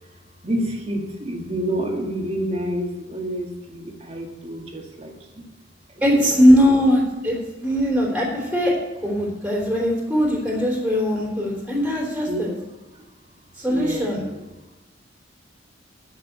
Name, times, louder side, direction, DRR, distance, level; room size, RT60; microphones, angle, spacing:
voice 1, 0.0-5.5 5.9-6.4 12.2-12.6 12.9-13.0 13.7-14.4, right 1 dB, 30° right, 1 dB, 1.9 m, -29 dB
voice 2, 6.0-8.7 9.0-12.5 13.6-14.2, equal, 5° right, -3 dB, 3.4 m, -20 dB
10.5 x 6.5 x 8.1 m, 1.1 s
head